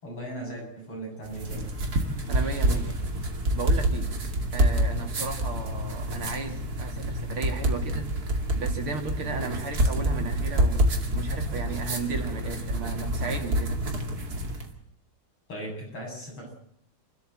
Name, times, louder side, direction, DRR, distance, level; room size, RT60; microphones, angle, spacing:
voice 1, 0.0-1.6 15.5-16.5, right 1 dB, 85° left, -1 dB, 8.4 m, -38 dB
sound 1, 1.2-14.7, right 1 dB, 45° right, 2.9 m, -27 dB
voice 2, 2.3-3.0 3.5-4.1 4.5-8.1 8.5-13.8, right 4 dB, 75° right, 4 dB, 3.6 m, -35 dB
28.5 x 13.0 x 7.6 m, 0.68 s
omnidirectional pair, 2.4 m